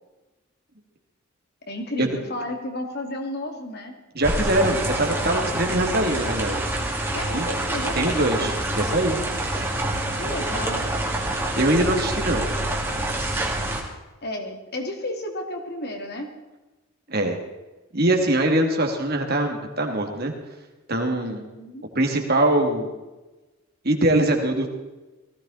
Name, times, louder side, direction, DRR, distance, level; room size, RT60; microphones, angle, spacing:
voice 1, 1.7-3.9 7.1-8.6 10.2-11.0 14.2-16.3 21.2-21.9, left 1 dB, 50° left, 3 dB, 2.6 m, -32 dB
voice 2, 4.1-6.6 7.3-7.5 8.0-9.2 11.6-12.5 17.1-17.4 17.9-20.3 20.9-21.4 21.9-22.9 23.8-24.7, right 1 dB, 45° right, 2 dB, 2.7 m, -22 dB
sound 1, 4.2-13.8, right 1 dB, 10° right, 2.7 m, -26 dB
19.0 x 16.0 x 4.3 m, 1.1 s
head